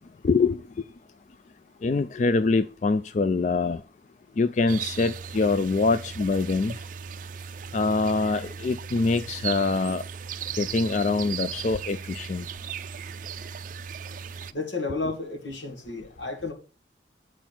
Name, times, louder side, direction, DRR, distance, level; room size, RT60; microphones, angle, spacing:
voice 1, 0.2-0.6 1.8-3.8 4.4-6.7 7.7-10.0 10.6-12.4, left 3 dB, 40° left, 0.3 m, -24 dB
sound 1, 4.7-14.5, right 7 dB, 45° right, 0.4 m, -37 dB
voice 2, 14.5-16.5, left 3 dB, 85° left, 2.1 m, -32 dB
8.9 x 4.6 x 5.9 m
head